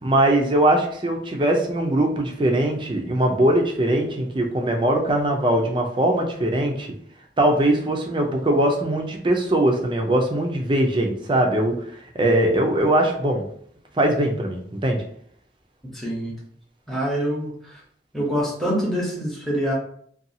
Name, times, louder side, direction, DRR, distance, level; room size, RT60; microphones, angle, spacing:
voice 1, 0.0-6.9 7.4-11.7 12.1-13.4 14.0-15.0, right 1 dB, 25° right, 2 dB, 0.4 m, -21 dB
voice 2, 15.9-16.3 16.9-17.8 18.1-19.7, equal, ahead, -5 dB, 0.8 m, -25 dB
2.7 x 2.3 x 2.7 m, 0.62 s
head